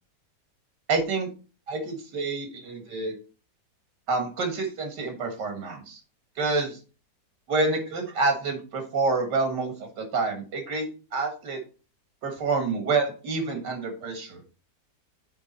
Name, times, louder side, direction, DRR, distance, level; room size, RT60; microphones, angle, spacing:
voice 1, 0.9-1.3 1.7-3.1 4.1-6.0 6.4-6.8 7.5-11.6 12.2-14.3, right 3 dB, 90° right, 5 dB, 2.2 m, -28 dB
8.6 x 3.5 x 4.0 m, 0.34 s
omnidirectional pair, 1.8 m